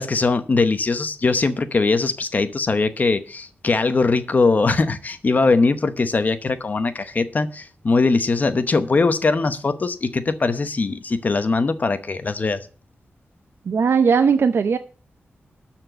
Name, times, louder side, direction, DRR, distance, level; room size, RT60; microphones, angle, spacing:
voice 1, 0.0-12.6, left 3 dB, 40° left, 0.9 m, -21 dB
voice 2, 13.7-14.8, right 6 dB, 70° right, 0.7 m, -18 dB
13.0 x 4.4 x 7.9 m
wide cardioid pair, 145°, 4 cm